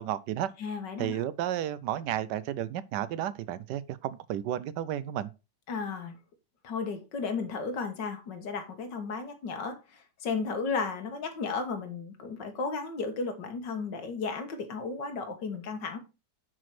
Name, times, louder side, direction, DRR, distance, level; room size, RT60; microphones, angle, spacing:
voice 1, 0.0-0.5 1.0-5.3, right 11 dB, 80° right, 1.2 m, -32 dB
voice 2, 0.6-1.2 5.7-6.2 6.6-16.0, left 4 dB, 85° left, 2.0 m, -34 dB
6.2 x 4.7 x 5.8 m
omnidirectional pair, 1.9 m